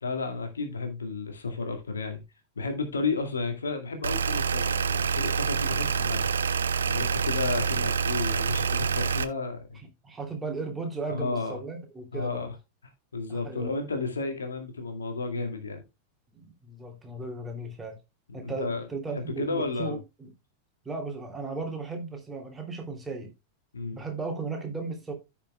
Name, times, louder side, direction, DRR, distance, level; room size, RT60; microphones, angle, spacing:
voice 1, 0.0-2.2 2.6-6.3 6.8-9.8 11.1-11.6 12.1-12.5 13.1-15.8 18.3-18.8 19.1-20.0 23.7-24.0, left 3 dB, 70° left, 2.1 m, -32 dB
sound 1, 4.0-9.2, right 6 dB, 70° right, 0.6 m, -27 dB
voice 2, 9.7-12.4 13.3-13.8 16.3-18.0 18.3-20.3 20.8-23.3 23.9-25.1, right 3 dB, 15° right, 2.9 m, -36 dB
15.0 x 5.9 x 2.3 m
figure-of-eight pair, 90°, 0 cm